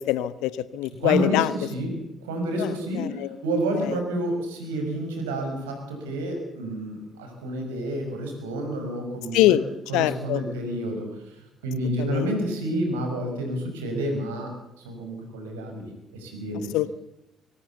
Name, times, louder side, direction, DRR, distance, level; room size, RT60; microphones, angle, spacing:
voice 1, 0.0-1.5 2.6-3.3 3.9-4.0 9.3-9.6 9.9-10.4 12.0-12.3 16.7-16.9, left 14 dB, 70° left, 17 dB, 0.9 m, -23 dB
voice 2, 0.9-1.9 2.2-9.6 9.9-14.5 14.8-16.7, right 1 dB, 80° right, 3 dB, 5.7 m, -29 dB
23.0 x 17.5 x 7.0 m, 0.85 s
hypercardioid pair, 45°, 0 cm